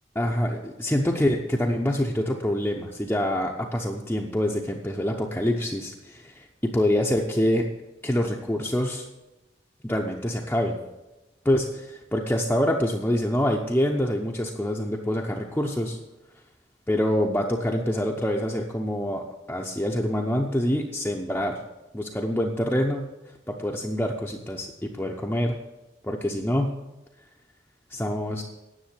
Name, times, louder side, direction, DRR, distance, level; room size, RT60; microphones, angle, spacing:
voice 1, 0.1-6.5 6.7-7.7 8.0-9.1 9.8-10.8 11.4-16.0 16.9-21.6 21.9-23.1 23.5-25.6 26.0-26.7 27.9-28.4, left 1 dB, 10° left, -1 dB, 0.7 m, -26 dB
10.5 x 6.9 x 8.1 m, 1.0 s
head